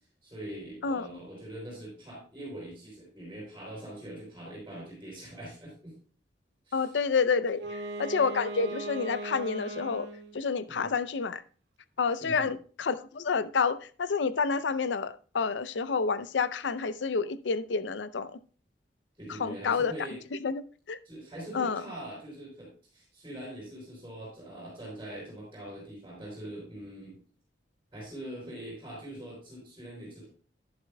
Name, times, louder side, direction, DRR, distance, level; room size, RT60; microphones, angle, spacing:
voice 1, 0.2-5.9 6.7-6.9 10.7-10.9 12.2-12.5 19.2-20.2 21.0-27.2 27.9-30.3, right 1 dB, 15° right, 5.5 m, -43 dB
voice 2, 6.7-10.1 10.3-11.4 12.0-18.4 19.3-19.9 20.3-21.0 21.5-21.8, left 5 dB, 85° left, 0.5 m, -29 dB
Wind instrument woodwind instrument, 7.5-10.4, right 1 dB, 75° right, 1.0 m, -38 dB
11.5 x 11.0 x 2.2 m
head